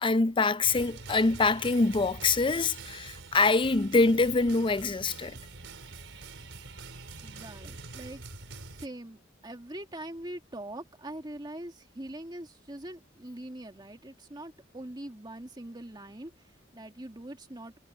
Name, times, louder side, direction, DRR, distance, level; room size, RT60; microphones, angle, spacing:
voice 1, 0.0-5.4, left 3 dB, 25° left, 0.5 m, -25 dB
sound 1, 0.6-8.9, right 3 dB, 80° right, 4.3 m, -45 dB
voice 2, 7.2-8.2 8.7-17.8, right 1 dB, 25° right, 2.1 m, -43 dB
head